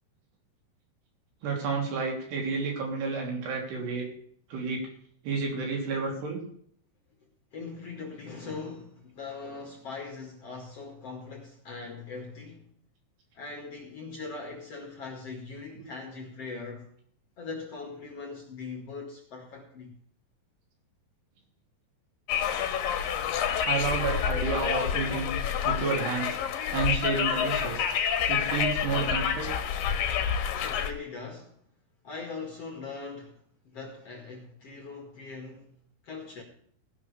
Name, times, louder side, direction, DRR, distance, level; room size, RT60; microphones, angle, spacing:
voice 1, 1.4-4.1 4.5-4.8 5.2-6.4 23.6-25.3 25.7-26.4 26.7-27.9 28.3-29.5, right 4 dB, 80° right, 5.3 m, -30 dB
voice 2, 7.5-12.7 13.3-16.9 17.4-19.9 30.6-31.6 32.0-33.4 33.7-36.4, left 4 dB, 45° left, 2.4 m, -41 dB
Conversation, 22.3-30.9, left 8 dB, 70° left, 2.7 m, -28 dB
16.5 x 12.0 x 3.4 m
omnidirectional pair, 4.7 m